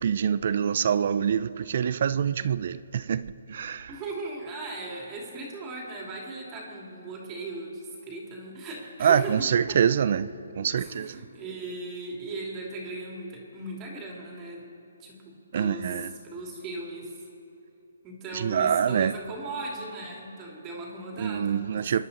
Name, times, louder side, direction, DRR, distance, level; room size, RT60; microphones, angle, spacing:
voice 1, 0.0-3.9 9.0-10.3 10.6-11.2 15.5-16.1 18.3-19.1 21.2-22.0, right 8 dB, 55° right, 0.4 m, -25 dB
voice 2, 3.9-9.8 10.7-14.6 15.0-17.1 18.0-22.0, right 2 dB, 25° right, 2.8 m, -38 dB
25.5 x 10.5 x 4.2 m
hypercardioid pair, 150°, 0 cm